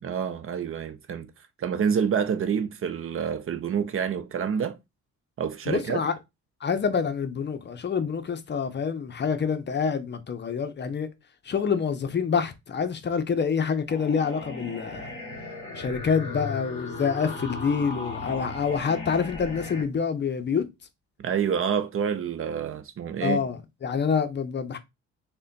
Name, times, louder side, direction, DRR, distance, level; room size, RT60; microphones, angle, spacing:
voice 1, 0.0-1.3 1.6-4.8 5.4-6.0 21.2-23.4, right 7 dB, 45° right, 0.6 m, -27 dB
voice 2, 5.7-6.1 6.6-11.1 11.4-15.1 15.7-20.7 23.2-24.8, left 6 dB, 35° left, 0.6 m, -27 dB
sound 1, 13.9-19.8, left 2 dB, 20° left, 2.2 m, -37 dB
3.3 x 2.2 x 3.8 m
cardioid pair, 90°, 30 cm